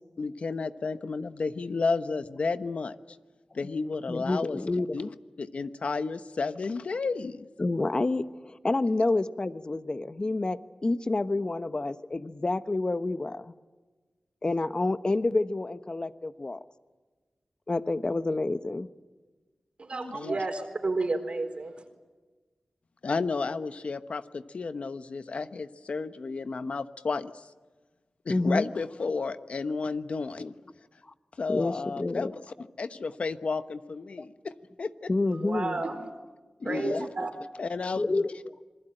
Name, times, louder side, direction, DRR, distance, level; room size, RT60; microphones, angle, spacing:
voice 1, 0.2-3.0 3.5-4.6 4.9-5.1 5.4-7.5 19.9-20.4 23.0-27.4 28.2-30.5 31.4-32.4 32.8-34.5 34.8-35.1 36.6-37.1 37.6-38.3, left 4 dB, 75° left, 11 dB, 1.1 m, -32 dB
voice 2, 4.1-5.0 7.6-13.5 14.4-16.6 17.7-18.9 28.3-28.7 31.0-31.1 31.5-32.3 35.1-35.8 36.7-37.3 38.0-38.6, left 2 dB, 45° left, 12 dB, 1.1 m, -29 dB
voice 3, 19.8-21.7 35.3-36.0 36.6-37.3, right 3 dB, 60° right, 5 dB, 3.9 m, -31 dB
27.0 x 20.5 x 9.0 m, 1.3 s
cardioid pair, 45°, 2 cm